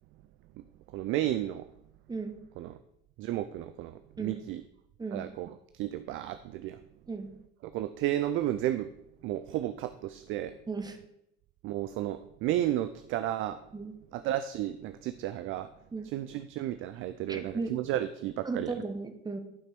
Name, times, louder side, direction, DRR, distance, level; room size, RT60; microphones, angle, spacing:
voice 1, 0.9-1.7 2.6-2.8 3.2-4.6 5.1-6.8 7.7-8.9 9.2-10.5 11.6-13.6 14.1-15.7 16.0-18.7, right 13 dB, 35° right, 11 dB, 0.4 m, -32 dB
voice 2, 2.1-2.4 4.2-4.4 5.0-5.2 7.1-7.3 10.7-11.0 13.7-14.0 15.9-16.1 17.3-17.8 18.4-19.4, right 3 dB, 10° right, 7 dB, 1.0 m, -35 dB
11.0 x 5.9 x 4.4 m, 0.79 s
figure-of-eight pair, 65°, 34 cm